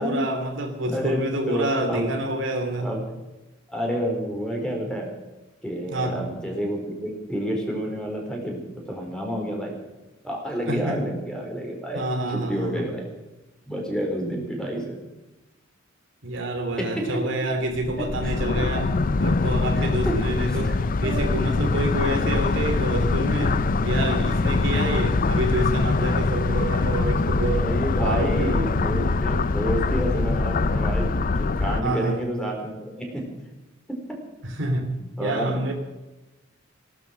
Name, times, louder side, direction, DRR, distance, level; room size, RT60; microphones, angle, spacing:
voice 1, 0.0-3.0 5.9-6.2 10.7-11.0 11.9-12.9 16.2-27.7 28.0-28.8 31.8-32.2 34.4-35.7, right 1 dB, 65° right, 4 dB, 2.9 m, -28 dB
voice 2, 0.9-1.2 1.5-2.1 2.8-3.0 3.7-5.1 5.6-9.8 10.2-12.0 12.3-13.0 13.7-15.0 16.8-16.9 18.2-18.6 19.8-20.1 20.4-20.7 21.0-21.5 27.4-33.3 33.9-34.2 35.0-35.6, equal, 5° left, 0 dB, 4.3 m, -29 dB
sound 1, 17.7-31.8, left 3 dB, 45° left, 0.5 m, -23 dB
17.5 x 12.5 x 6.5 m, 1.0 s
head